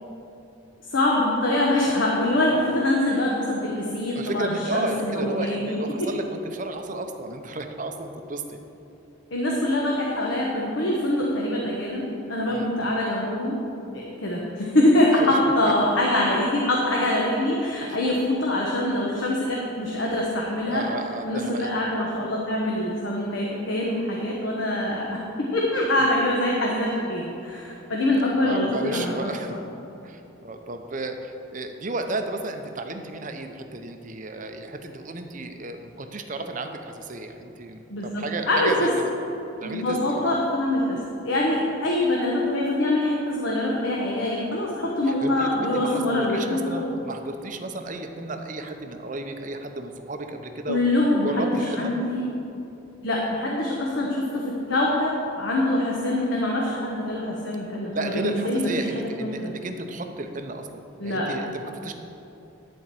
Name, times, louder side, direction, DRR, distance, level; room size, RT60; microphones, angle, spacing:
voice 1, 0.9-6.1 9.3-13.6 13.9-20.9 21.2-29.6 37.9-38.9 39.6-46.9 50.7-52.3 53.0-59.5 61.0-61.3, left 1 dB, 65° left, -3 dB, 1.1 m, -24 dB
voice 2, 4.1-8.6 12.5-12.7 15.2-15.4 20.7-21.7 28.4-29.6 30.0-39.1 39.6-40.3 45.2-50.8 51.2-51.9 57.9-61.9, right 2 dB, 40° right, 6 dB, 0.6 m, -33 dB
11.5 x 4.5 x 7.6 m, 3.0 s
head